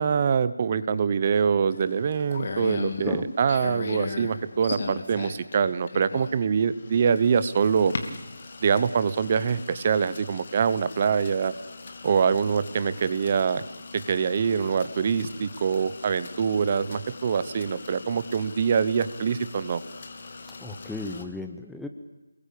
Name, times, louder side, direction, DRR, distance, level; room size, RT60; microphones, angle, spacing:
voice 1, 0.0-7.9 8.6-11.5 12.0-13.6 14.1-19.8, right 6 dB, 25° right, 15 dB, 1.0 m, -24 dB
sound 1, 1.7-21.2, left 4 dB, 35° left, 3.0 m, -39 dB
voice 2, 20.6-21.9, left 2 dB, ahead, 4 dB, 0.9 m, -35 dB
28.5 x 21.5 x 8.6 m, 1.1 s
figure-of-eight pair, 175°, 0 cm